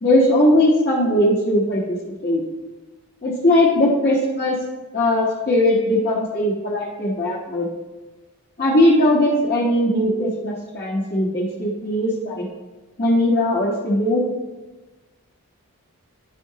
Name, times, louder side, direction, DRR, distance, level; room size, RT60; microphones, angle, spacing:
voice 1, 0.0-2.4 3.2-4.6 4.9-7.7 8.6-12.5 13.0-14.2, left 1 dB, 40° left, -8 dB, 1.1 m, -19 dB
10.5 x 4.8 x 2.8 m, 1.2 s
head